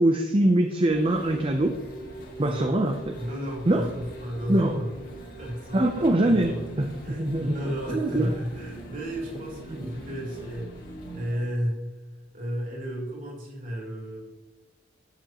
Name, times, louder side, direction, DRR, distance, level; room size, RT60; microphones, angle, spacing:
voice 1, 0.0-1.8 2.4-2.9 3.7-3.9 4.5-4.8 5.7-7.5 7.9-8.3 9.8-9.9, right 1 dB, 30° right, 5 dB, 0.7 m, -23 dB
sound 1, 0.9-11.3, right 1 dB, 50° left, 2.6 m, -42 dB
voice 2, 2.4-2.8 3.2-4.9 5.4-11.8 12.3-14.3, equal, 45° right, -2 dB, 3.3 m, -33 dB
12.0 x 9.3 x 3.0 m, 1.0 s
head